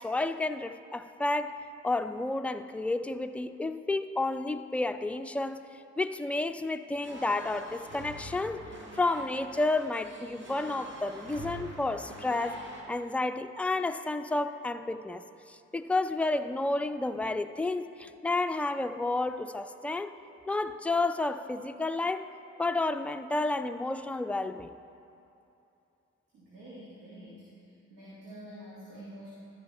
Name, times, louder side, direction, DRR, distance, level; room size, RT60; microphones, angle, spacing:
voice 1, 0.0-1.6 1.8-5.6 6.0-8.7 8.9-12.6 12.9-20.1 20.5-22.3 22.6-24.8, left 2 dB, 5° left, 9 dB, 0.3 m, -31 dB
sound 1, 7.0-12.8, right 1 dB, 40° right, 1.5 m, -44 dB
voice 2, 26.3-27.5 27.9-29.3, right 1 dB, 90° right, -10 dB, 1.6 m, -47 dB
12.5 x 5.1 x 3.3 m, 2.7 s
hypercardioid pair, 40°, 31 cm